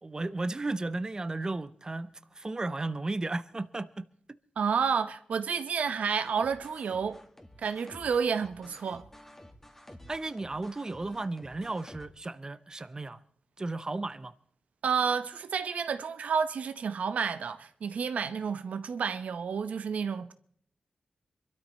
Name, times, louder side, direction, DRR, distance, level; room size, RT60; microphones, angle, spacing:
voice 1, 0.0-4.1 10.1-13.2 13.6-14.3, right 2 dB, 30° right, 0.7 m, -34 dB
voice 2, 4.6-7.2 7.6-9.1 14.8-20.3, right 6 dB, 85° right, 0.8 m, -30 dB
sound 1, 6.2-12.1, left 1 dB, 15° left, 2.0 m, -52 dB
23.0 x 13.0 x 4.3 m
cardioid pair, 65°, 2 cm